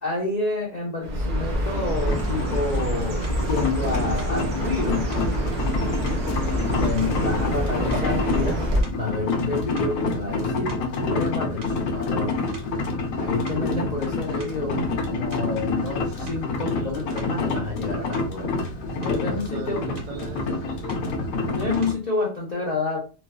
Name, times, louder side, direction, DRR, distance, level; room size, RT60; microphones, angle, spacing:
voice 1, 0.0-5.1 6.7-8.6 8.9-12.3 13.2-14.8 15.1-18.6 19.0-19.8 21.5-23.0, left 3 dB, 55° left, 0.4 m, -29 dB
Chirp tweet, 1.0-8.8, equal, 65° right, 0.4 m, -26 dB
sound 1, 2.1-21.9, left 3 dB, 70° left, 0.9 m, -28 dB
sound 2, 3.2-3.4 4.2-4.4 5.1-5.3 6.0-6.3 7.0-7.6 7.9-8.3 8.8-9.2 9.7-11.3 11.6-11.8 12.5-12.8 13.5-13.7 14.2-14.7 15.3-15.5 16.3-16.5 17.2-17.4 18.1-18.4 18.8-19.2 20.0-20.2 20.9-21.1 21.8-22.1, right 2 dB, 50° right, 1.3 m, -47 dB
voice 2, 5.5-6.0 19.1-21.1, right 6 dB, 80° right, 1.2 m, -40 dB
3.1 x 2.1 x 2.3 m
omnidirectional pair, 1.7 m